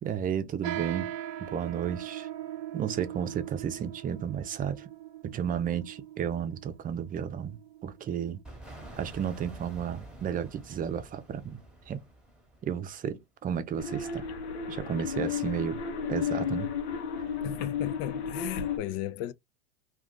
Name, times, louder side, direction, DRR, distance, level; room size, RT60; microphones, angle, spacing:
voice 1, 0.0-1.1 1.4-2.3 2.7-4.9 5.2-8.4 9.0-11.6 11.9-12.0 12.6-14.3 14.7-15.8 16.1-16.7, right 8 dB, 25° right, 0.6 m, -33 dB
sound 1, 0.6-8.4, right 12 dB, 75° right, 0.5 m, -40 dB
sound 2, 8.4-13.1, right 2 dB, 5° right, 1.0 m, -48 dB
sound 3, 13.8-18.8, left 7 dB, 80° left, 0.8 m, -33 dB
voice 2, 17.4-19.3, left 14 dB, 50° left, 0.4 m, -35 dB
2.4 x 2.4 x 3.7 m
hypercardioid pair, 95°, 32 cm